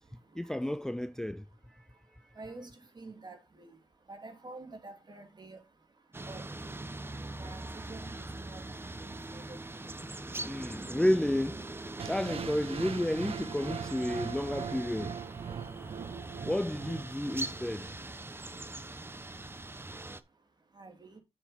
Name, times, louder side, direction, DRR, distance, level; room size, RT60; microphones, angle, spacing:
voice 1, 0.3-1.8 2.1-2.2 10.4-11.6 12.0-15.2 16.4-17.9, left 1 dB, 5° left, 0.4 m, -31 dB
voice 2, 2.4-2.7 3.0-3.7 4.1-5.6 6.3-6.8 7.4-8.6 9.0-9.6 20.8-21.2, right 3 dB, 40° right, 2.8 m, -48 dB
sound 1, 6.1-20.2, right 2 dB, 20° right, 0.9 m, -42 dB
sound 2, 12.0-18.0, right 7 dB, 60° right, 0.6 m, -41 dB
7.1 x 7.1 x 4.2 m
cardioid pair, 60°, 11 cm